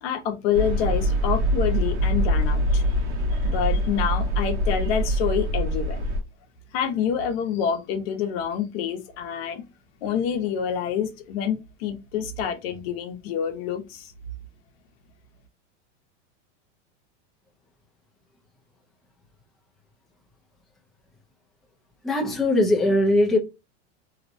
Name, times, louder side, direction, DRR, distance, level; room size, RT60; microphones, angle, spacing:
voice 1, 0.0-2.8 3.4-6.0 6.7-9.6 10.0-14.1, left 8 dB, 60° left, 0.8 m, -27 dB
sound 1, 0.5-6.2, equal, 80° right, 1.1 m, -24 dB
voice 2, 22.0-23.4, left 1 dB, ahead, 0.4 m, -20 dB
2.9 x 2.1 x 2.6 m
supercardioid pair, 145°, 35 cm